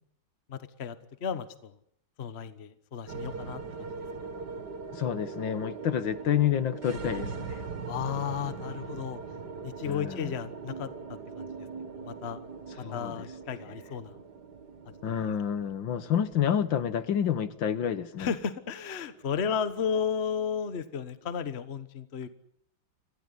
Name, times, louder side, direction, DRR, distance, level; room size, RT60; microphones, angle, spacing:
voice 1, 0.5-1.7 2.2-3.9 4.2-4.3 7.9-9.2 9.6-11.7 12.0-12.4 12.9-14.2 15.1-15.3 18.2-22.3, left 7 dB, 35° left, 12 dB, 1.3 m, -34 dB
sound 1, 3.1-21.5, right 5 dB, 55° right, 2.4 m, -42 dB
voice 2, 4.9-7.6 9.9-10.4 12.8-13.3 15.0-18.3, left 9 dB, 70° left, 13 dB, 1.9 m, -29 dB
26.0 x 16.5 x 9.8 m, 0.73 s
omnidirectional pair, 2.2 m